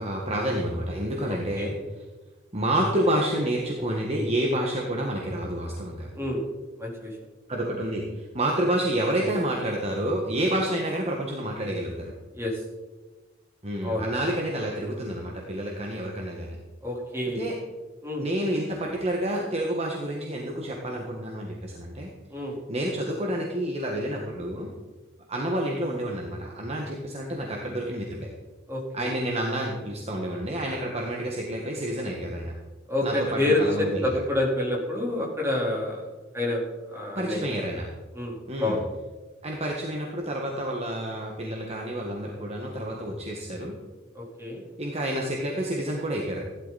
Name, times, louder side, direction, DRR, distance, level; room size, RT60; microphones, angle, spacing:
voice 1, 0.0-1.8 2.5-6.1 7.5-12.1 13.6-16.6 17.3-17.5 18.2-22.1 22.7-24.7 25.3-28.3 28.9-32.5 33.0-34.1 37.1-37.9 38.5-38.8 39.4-43.7 44.8-46.4, right 1 dB, 30° right, -1 dB, 1.6 m, -29 dB
voice 2, 1.2-1.7 6.1-6.4 6.8-7.2 12.3-12.6 13.8-14.1 16.8-17.5 18.0-18.3 22.3-22.6 28.7-29.1 32.9-36.1 36.3-37.5 38.1-38.8 44.1-44.6, left 1 dB, 15° right, -3 dB, 3.8 m, -28 dB
15.5 x 12.0 x 4.2 m, 1.2 s
head